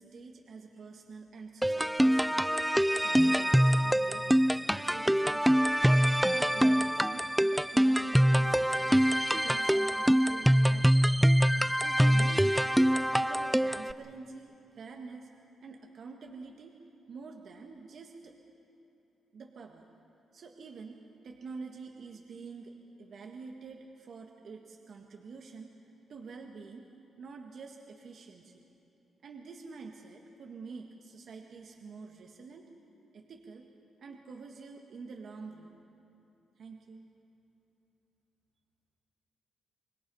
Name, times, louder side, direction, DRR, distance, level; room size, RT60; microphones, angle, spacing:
voice 1, 0.0-2.5 2.9-5.5 5.9-11.1 11.8-16.8 17.1-18.3 19.3-19.8 20.3-21.0 21.2-25.7 26.1-26.9 27.2-28.6 29.2-32.7 33.1-33.7 34.0-35.8 36.6-37.1, right 4 dB, 65° right, 1 dB, 1.7 m, -47 dB
sound 1, 1.6-13.9, equal, 5° right, 0.4 m, -25 dB
25.5 x 21.0 x 5.6 m, 3.0 s
cardioid pair, 80°, 0 cm